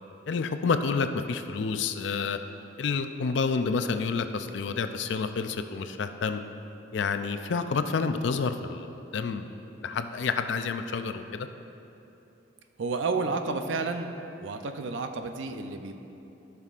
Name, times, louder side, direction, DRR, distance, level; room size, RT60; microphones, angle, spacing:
voice 1, 0.3-2.4 2.8-6.4 6.9-9.5 9.8-11.5, left 5 dB, 75° left, 9 dB, 0.4 m, -29 dB
voice 2, 12.8-14.1 14.4-15.9, right 4 dB, 80° right, 6 dB, 0.5 m, -31 dB
14.5 x 5.9 x 2.4 m, 3.0 s
head